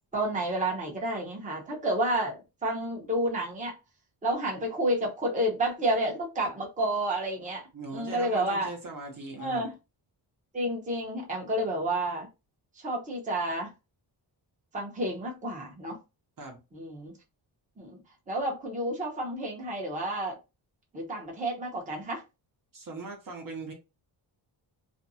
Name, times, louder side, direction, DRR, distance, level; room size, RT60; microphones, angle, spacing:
voice 1, 0.1-3.7 4.2-8.7 9.4-9.7 10.5-12.3 12.8-13.7 14.7-16.0 16.7-17.1 17.8-18.0 18.3-20.4 20.9-22.2, right 1 dB, 15° right, 0.8 m, -30 dB
voice 2, 7.7-9.7 16.4-16.6 22.7-23.7, right 3 dB, 45° right, 0.9 m, -40 dB
2.6 x 2.2 x 2.7 m
cardioid pair, 115°, 47 cm